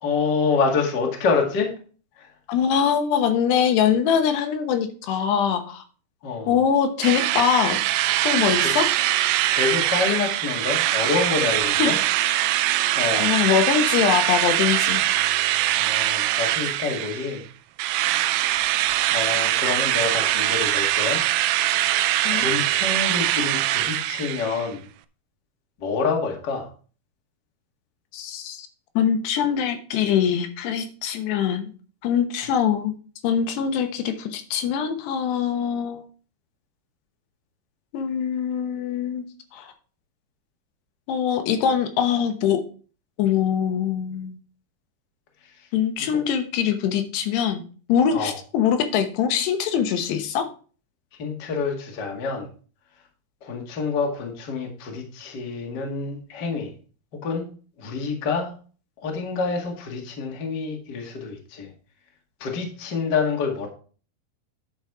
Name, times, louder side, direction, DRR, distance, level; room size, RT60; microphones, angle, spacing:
voice 1, 0.0-1.7 2.2-2.3 6.2-6.5 8.6-8.7 9.3-12.0 12.9-13.3 15.7-17.4 19.1-21.2 22.3-24.8 25.8-26.7 46.1-46.2 48.1-48.3 51.2-52.5 53.4-56.7 57.2-57.4 57.8-58.5 59.0-61.7 62.4-63.7, left 4 dB, 40° left, 1 dB, 1.5 m, -27 dB
voice 2, 2.5-5.8 6.5-7.8 8.2-8.9 11.8-12.0 13.2-15.0 22.2-22.5 28.1-28.7 29.0-31.7 32.0-33.0 33.2-36.0 37.9-39.2 39.5-39.7 41.1-42.6 43.2-44.4 45.7-47.6 47.9-50.5, left 8 dB, 80° left, 7 dB, 3.2 m, -23 dB
Drill, 7.0-17.4 17.8-24.7, right 14 dB, 85° right, 2.1 m, -22 dB
10.5 x 5.3 x 4.7 m, 0.39 s
omnidirectional pair, 4.8 m